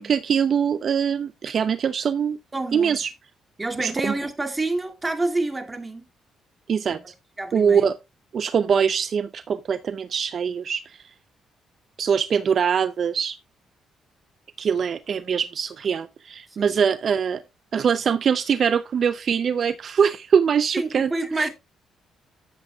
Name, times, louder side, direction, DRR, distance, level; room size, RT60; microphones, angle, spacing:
voice 1, 0.0-2.4 2.7-3.1 3.8-4.1 6.7-7.0 7.5-7.9 8.3-11.0 12.0-13.4 14.6-17.4 17.7-21.5, right 7 dB, 55° right, 0.5 m, -23 dB
voice 2, 2.5-3.0 3.6-6.0 6.9-7.0 7.4-7.9 16.6-16.8 20.7-21.5, right 2 dB, 20° right, 2.4 m, -28 dB
13.0 x 8.1 x 2.3 m
cardioid pair, 90°, 0 cm